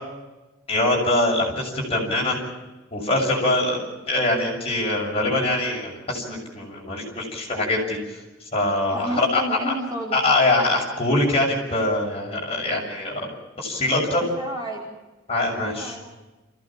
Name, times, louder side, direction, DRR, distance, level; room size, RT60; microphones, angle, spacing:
voice 1, 0.7-2.4 2.9-3.8 4.1-8.0 8.5-9.6 10.1-13.1 13.6-14.3 15.3-16.0, left 2 dB, 30° left, -1 dB, 7.0 m, -23 dB
voice 2, 8.9-10.2 14.3-14.9 15.5-16.0, right 1 dB, 20° right, -2 dB, 5.1 m, -31 dB
28.5 x 16.5 x 7.5 m, 1.1 s
head